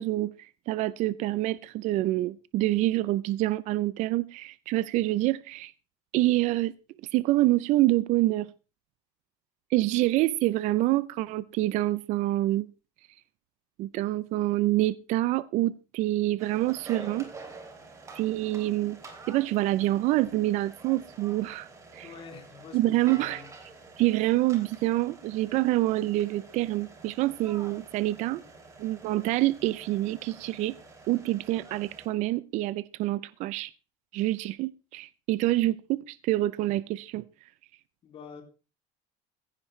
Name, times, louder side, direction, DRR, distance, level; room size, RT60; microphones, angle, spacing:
voice 1, 0.0-5.7 6.1-6.7 7.1-8.5 9.7-12.7 13.8-17.3 18.1-19.0 19.3-21.7 21.9-22.1 22.7-23.4 24.0-28.4 28.8-30.8 31.1-33.7 34.1-37.2, right 16 dB, 50° right, 0.6 m, -26 dB
sound 1, 16.4-32.1, right 3 dB, 20° right, 3.2 m, -48 dB
voice 2, 22.0-23.5 38.0-38.4, left 6 dB, 35° left, 3.2 m, -47 dB
15.5 x 14.5 x 3.2 m
cardioid pair, 160°, 16 cm